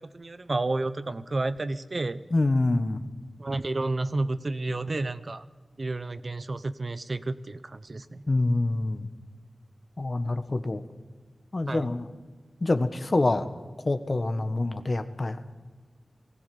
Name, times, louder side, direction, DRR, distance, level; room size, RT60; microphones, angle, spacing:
voice 1, 0.1-2.2 3.4-5.4 5.8-8.2 11.7-11.9, right 2 dB, 55° right, 13 dB, 1.0 m, -31 dB
voice 2, 2.3-3.0 8.3-9.1 10.0-10.8 11.5-12.1 12.6-13.5 13.8-15.4, left 2 dB, 50° left, 10 dB, 1.5 m, -26 dB
19.0 x 16.5 x 8.8 m, 1.4 s
wide cardioid pair, 60°, 0 cm